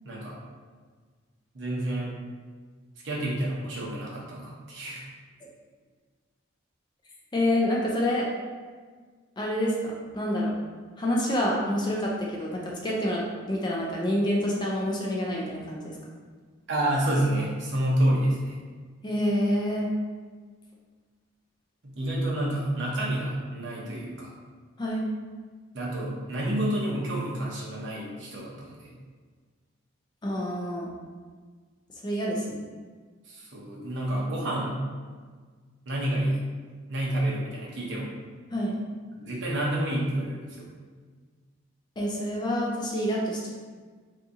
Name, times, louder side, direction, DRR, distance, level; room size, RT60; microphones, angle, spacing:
voice 1, 0.0-0.4 1.5-2.1 3.0-5.1 16.7-18.6 21.8-24.3 25.7-28.9 33.3-34.8 35.9-36.4 36.9-38.2 39.1-40.7, right 1 dB, 60° right, -4 dB, 0.8 m, -29 dB
voice 2, 7.3-8.3 9.4-10.5 11.0-15.9 19.0-19.9 24.8-25.1 30.2-30.9 32.0-32.6 38.5-38.8 42.0-43.5, left 1 dB, 20° left, -3 dB, 0.4 m, -27 dB
2.7 x 2.6 x 3.5 m, 1.5 s
head